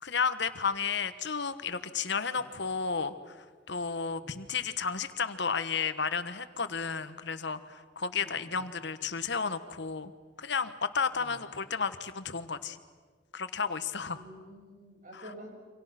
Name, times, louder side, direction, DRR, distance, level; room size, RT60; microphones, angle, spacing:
voice 1, 0.0-10.1 10.4-12.8 13.3-14.2 15.1-15.2, left 5 dB, 65° left, 12 dB, 1.4 m, -32 dB
voice 2, 8.2-8.7 11.1-11.4 14.0-15.5, equal, 45° right, 1 dB, 7.1 m, -50 dB
29.0 x 26.0 x 6.0 m, 1.5 s
head